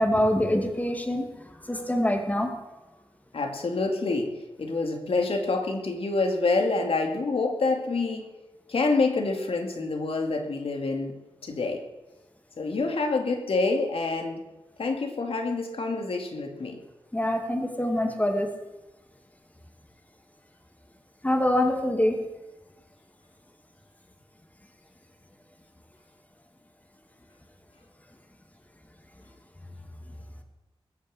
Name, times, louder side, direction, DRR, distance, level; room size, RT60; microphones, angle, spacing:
voice 1, 0.0-2.5 17.1-18.5 21.2-22.2, left 1 dB, 15° left, 4 dB, 2.3 m, -25 dB
voice 2, 3.3-8.3 8.7-11.1 11.4-11.8 12.6-14.4 14.8-16.8, left 3 dB, 75° left, 4 dB, 2.5 m, -27 dB
20.0 x 7.5 x 8.0 m, 1.1 s
wide cardioid pair, 85°, 10 cm